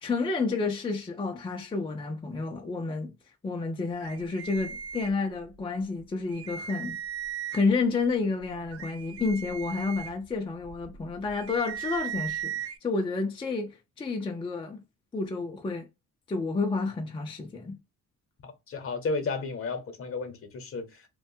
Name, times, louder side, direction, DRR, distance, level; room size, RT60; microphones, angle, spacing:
voice 1, 0.0-3.1 3.4-7.0 7.5-14.8 15.1-15.9 16.3-17.8, left 4 dB, 15° left, 0.4 m, -30 dB
sound 1, 4.0-5.6 6.0-6.1 6.3-7.9 8.4-12.8, right 8 dB, 50° right, 0.4 m, -38 dB
voice 2, 18.4-21.1, left 4 dB, 45° left, 0.8 m, -33 dB
2.4 x 2.2 x 2.6 m
cardioid pair, 90°, 30 cm